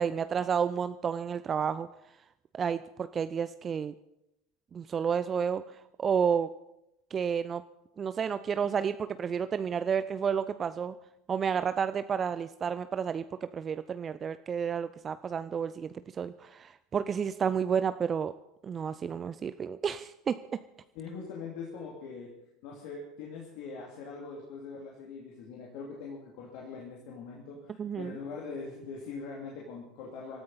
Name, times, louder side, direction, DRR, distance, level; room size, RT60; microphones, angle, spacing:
voice 1, 0.0-1.9 2.5-3.9 4.7-6.5 7.1-7.6 8.0-10.9 11.3-18.3 18.6-20.4 27.8-28.2, right 7 dB, 30° right, 13 dB, 0.5 m, -31 dB
voice 2, 20.9-22.3 22.6-30.4, left 4 dB, 55° left, -2 dB, 2.8 m, -42 dB
23.5 x 13.5 x 4.2 m, 0.86 s
figure-of-eight pair, 70°, 0 cm